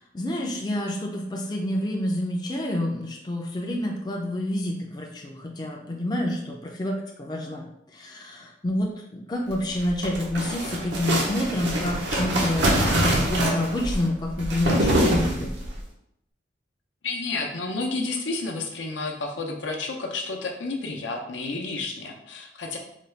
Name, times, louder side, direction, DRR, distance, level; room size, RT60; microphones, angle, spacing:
voice 1, 0.1-7.6 7.9-15.5, left 1 dB, 25° left, 0 dB, 0.4 m, -28 dB
sound 1, 9.7-15.8, right 1 dB, 85° right, 0.8 m, -24 dB
voice 2, 17.0-22.8, left 3 dB, 85° left, 2 dB, 0.6 m, -31 dB
3.9 x 2.3 x 3.3 m, 0.77 s
head